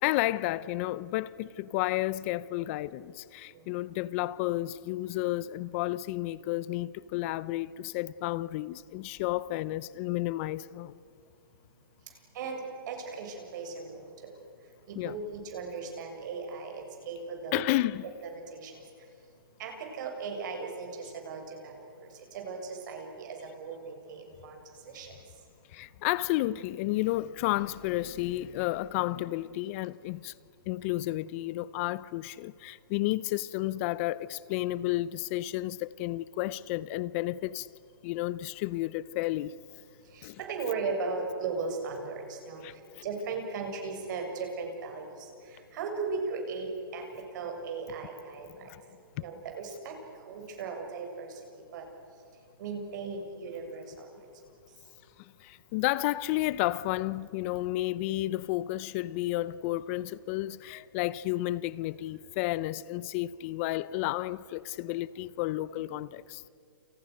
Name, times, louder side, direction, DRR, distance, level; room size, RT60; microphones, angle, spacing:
voice 1, 0.0-11.0 15.0-15.2 17.5-18.1 25.7-30.3 30.7-37.7 38.0-39.5 40.2-40.4 42.6-43.0 55.2-66.4, left 17 dB, 35° left, 0.6 m, -32 dB
voice 2, 12.9-14.0 15.0-17.6 18.1-18.7 19.6-21.7 22.3-24.6 24.9-25.1 40.1-42.6 43.0-45.0 45.7-47.0 47.3-48.5 49.2-49.9 50.3-51.3 51.7-51.9 52.6-54.1, right 4 dB, 55° right, 7.3 m, -37 dB
29.5 x 29.5 x 6.6 m
hypercardioid pair, 145°, 12 cm